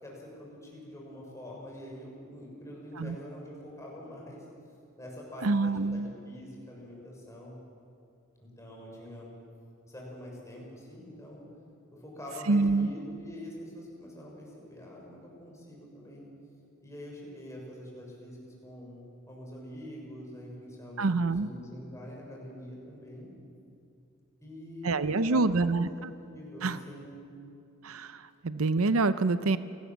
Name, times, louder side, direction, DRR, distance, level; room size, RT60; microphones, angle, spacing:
voice 1, 0.0-4.4 5.0-7.6 8.4-9.4 9.9-11.4 12.0-16.3 16.8-23.3 24.4-25.7 26.3-27.1, left 1 dB, 15° left, -2 dB, 6.3 m, -45 dB
voice 2, 5.4-6.1 12.5-12.9 21.0-21.5 24.8-25.9 26.6-26.8 27.8-29.6, right 3 dB, 75° right, 13 dB, 0.7 m, -26 dB
29.0 x 18.5 x 7.4 m, 2.5 s
head